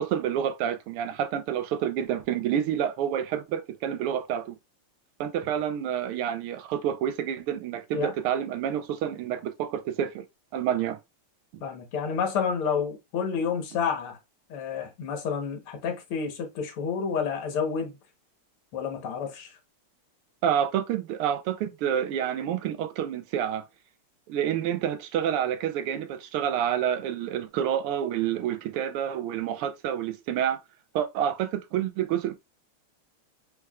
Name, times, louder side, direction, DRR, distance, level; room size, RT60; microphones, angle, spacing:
voice 1, 0.0-4.6 5.2-10.2 10.5-11.0 11.5-11.6 20.4-23.6 24.3-30.6 30.9-32.3, right 9 dB, 85° right, 1.6 m, -28 dB
voice 2, 11.6-14.2 14.5-18.0 18.7-19.5, left 6 dB, 75° left, 2.0 m, -29 dB
4.6 x 4.5 x 2.3 m
omnidirectional pair, 2.4 m